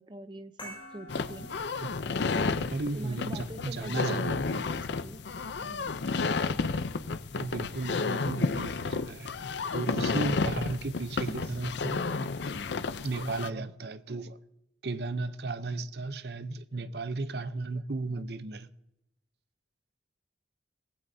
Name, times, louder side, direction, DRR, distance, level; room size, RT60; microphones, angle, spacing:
voice 1, 0.0-1.6 2.4-5.3 5.6-5.9, right 1 dB, 25° right, 0.6 m, -44 dB
sound 1, 0.6-5.7, equal, 25° left, 6.3 m, -51 dB
sound 2, 1.1-13.5, left 4 dB, 70° left, 0.6 m, -32 dB
voice 2, 2.7-4.4 7.3-9.3 9.7-12.1 13.0-14.4 14.8-18.7, right 3 dB, 60° right, 0.7 m, -35 dB
18.0 x 16.0 x 2.7 m
head